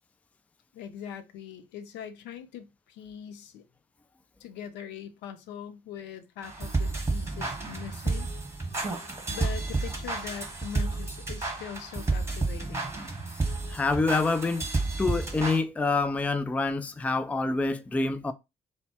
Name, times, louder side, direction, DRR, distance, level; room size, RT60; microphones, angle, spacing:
voice 1, 0.7-3.6 4.4-8.3 9.3-12.9, left 8 dB, 60° left, 0.6 m, -41 dB
sound 1, 6.4-15.6, right 3 dB, 15° right, 1.2 m, -31 dB
voice 2, 13.7-14.7 15.0-18.3, left 3 dB, 5° left, 0.3 m, -26 dB
4.0 x 2.1 x 3.0 m
figure-of-eight pair, 40°, 20 cm